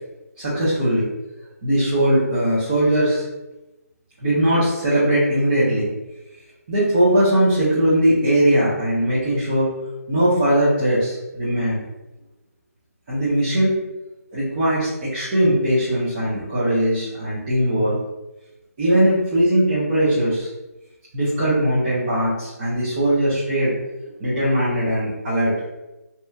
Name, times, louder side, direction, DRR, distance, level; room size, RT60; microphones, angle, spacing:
voice 1, 0.4-1.1 1.6-3.2 4.2-5.9 6.7-9.7 10.1-11.8 13.1-13.7 14.3-18.0 18.8-20.5 21.1-23.7 24.2-25.5, right 1 dB, 30° right, -12 dB, 1.0 m, -20 dB
3.1 x 2.9 x 2.4 m, 1.0 s
figure-of-eight pair, 150°, 9 cm